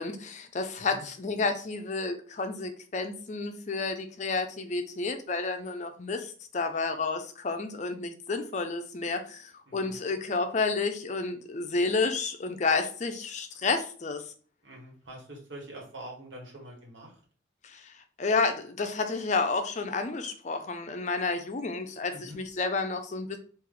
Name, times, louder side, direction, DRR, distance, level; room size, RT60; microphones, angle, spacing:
voice 1, 0.0-14.2 17.6-17.9 18.2-23.4, left 3 dB, 35° left, 7 dB, 0.4 m, -30 dB
voice 2, 9.7-10.0 14.6-17.1 22.1-22.4, right 1 dB, 70° right, -1 dB, 1.4 m, -45 dB
3.4 x 2.5 x 3.7 m, 0.42 s
head